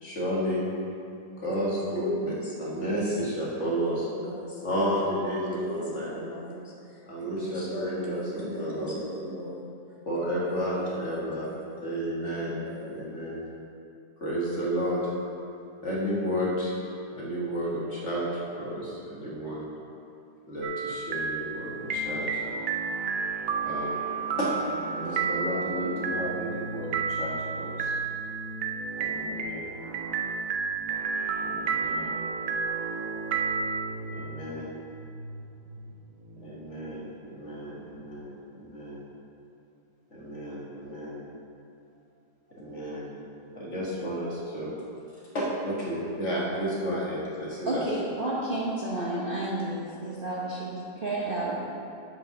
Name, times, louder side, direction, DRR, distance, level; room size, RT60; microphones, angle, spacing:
voice 1, 0.0-0.7 1.4-2.3 2.6-4.1 4.6-6.1 7.1-9.0 10.1-11.5 11.8-12.6 12.9-13.4 14.2-15.1 15.8-16.7 17.1-19.7 20.5-22.4 23.6-24.0 24.4-24.6 24.9-28.0 29.0-29.7 31.4-32.2 34.1-34.7 36.4-39.0 40.1-41.2 42.6-43.2 43.5-44.7 45.3-47.8, equal, 45° left, -6 dB, 1.8 m, -32 dB
voice 2, 1.5-2.9 4.1-4.5 4.9-5.0 5.5-6.6 7.2-9.7 10.2-11.9 12.3-13.0, equal, 10° right, -7 dB, 1.2 m, -38 dB
sound 1, 20.6-33.8, right 5 dB, 85° right, 0.5 m, -31 dB
sound 2, 21.8-38.3, right 2 dB, 60° right, 1.3 m, -41 dB
voice 3, 47.6-51.5, right 1 dB, 40° right, -6 dB, 1.0 m, -31 dB
7.8 x 5.6 x 5.7 m, 2.5 s
omnidirectional pair, 1.8 m